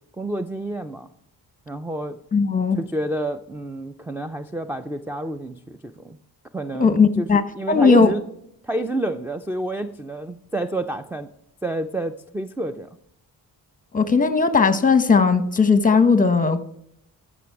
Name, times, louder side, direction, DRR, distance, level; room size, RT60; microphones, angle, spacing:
voice 1, 0.2-1.1 1.7-2.2 2.7-6.2 6.5-8.2 8.6-11.3 11.6-12.9, right 1 dB, 5° right, 0.4 m, -29 dB
voice 2, 2.3-2.8 6.8-7.4 7.7-8.1 13.9-16.6, left 4 dB, 20° left, 0.9 m, -17 dB
13.5 x 6.1 x 4.6 m
cardioid pair, 85°, 40 cm